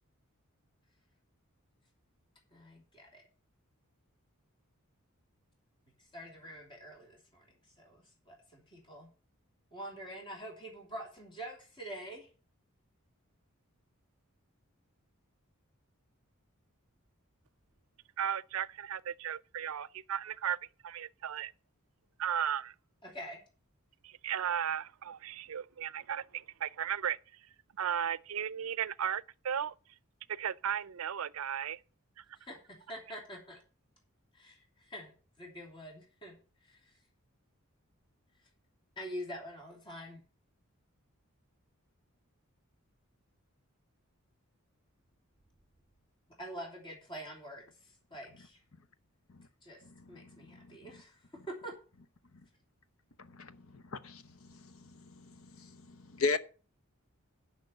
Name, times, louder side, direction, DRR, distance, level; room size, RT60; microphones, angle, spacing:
voice 1, 2.5-3.2 6.0-9.1 9.7-12.3 23.0-23.4 32.4-33.6 34.3-36.4 36.6-36.9 39.0-40.2 46.4-48.6 49.6-49.8 50.1-51.2 51.5-51.7, equal, 20° left, 2.9 m, -46 dB
voice 2, 18.2-20.6 20.8-21.5 22.2-22.7 24.0-27.2 27.8-29.7 30.3-31.8 32.2-32.3, right 9 dB, 70° right, 0.5 m, -35 dB
voice 3, 53.2-54.6 55.2-55.7 56.1-56.4, left 4 dB, 70° left, 0.8 m, -35 dB
10.5 x 5.9 x 6.7 m
head